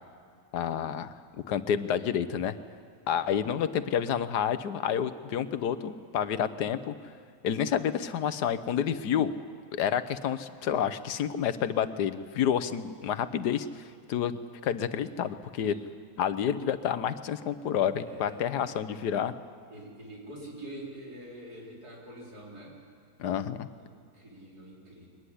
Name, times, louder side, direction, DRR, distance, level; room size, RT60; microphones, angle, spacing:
voice 1, 0.5-1.1 1.5-2.5 3.1-6.9 7.4-9.3 9.7-13.8 14.1-15.8 16.2-19.3 23.2-23.7, left 8 dB, 85° left, 12 dB, 1.5 m, -29 dB
voice 2, 3.1-3.4 12.6-12.8 15.7-15.9 18.0-18.8 19.7-22.8 23.8-25.1, right 1 dB, 70° right, -3 dB, 4.7 m, -46 dB
22.5 x 19.5 x 10.0 m, 2.1 s
omnidirectional pair, 1.7 m